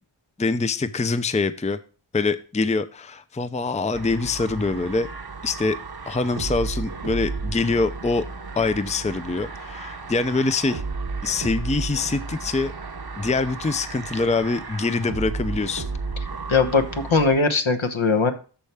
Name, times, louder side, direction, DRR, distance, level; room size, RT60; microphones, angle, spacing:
voice 1, 0.4-1.8 2.1-5.1 5.4-5.8 6.1-8.3 8.6-10.8 11.2-12.7 13.2-15.9, left 3 dB, 15° left, 12 dB, 0.5 m, -24 dB
sound 1, 3.9-17.4, right 4 dB, 50° right, 0.8 m, -33 dB
voice 2, 16.5-18.3, left 4 dB, 70° left, 7 dB, 1.2 m, -20 dB
13.0 x 4.4 x 3.4 m, 0.36 s
wide cardioid pair, 45°, 49 cm